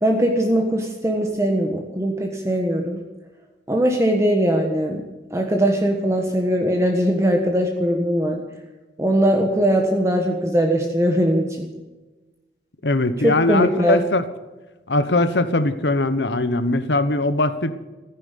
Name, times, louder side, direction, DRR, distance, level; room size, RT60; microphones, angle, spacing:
voice 1, 0.0-3.0 3.7-5.0 5.3-8.4 9.0-11.7 13.2-14.1, equal, 15° right, 2 dB, 1.4 m, -20 dB
voice 2, 12.8-14.2 14.9-17.7, left 2 dB, 85° left, 12 dB, 1.2 m, -20 dB
15.0 x 10.0 x 8.4 m, 1.2 s
head